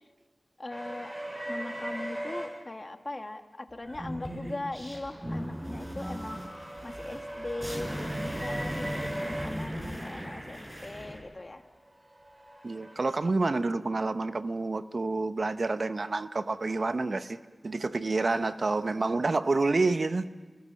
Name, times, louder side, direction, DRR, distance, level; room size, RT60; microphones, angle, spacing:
voice 1, 0.6-1.1 1.5-11.6, left 2 dB, 40° left, 6 dB, 1.8 m, -40 dB
sound 1, 0.7-2.5 4.9-9.5 11.9-13.2, right 1 dB, 35° right, 7.8 m, -39 dB
sound 2, 3.8-11.2, equal, 15° right, 5.7 m, -38 dB
voice 2, 12.6-17.4 17.6-20.3, right 3 dB, 60° right, 11 dB, 0.9 m, -28 dB
29.5 x 21.0 x 7.5 m, 1.3 s
cardioid pair, 45°, 0 cm